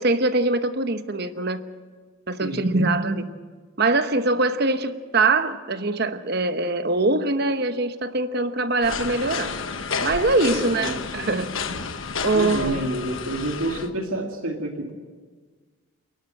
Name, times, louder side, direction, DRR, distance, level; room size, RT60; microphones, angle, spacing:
voice 1, 0.0-1.6 2.3-3.3 3.8-9.5 10.0-11.5 12.2-12.8, right 2 dB, 50° right, 1.0 m, -23 dB
voice 2, 2.4-2.8 10.5-11.0 12.3-14.9, right 1 dB, 90° right, 2.4 m, -29 dB
sound 1, 8.8-13.9, left 5 dB, 70° left, 1.2 m, -31 dB
29.0 x 11.5 x 7.8 m
head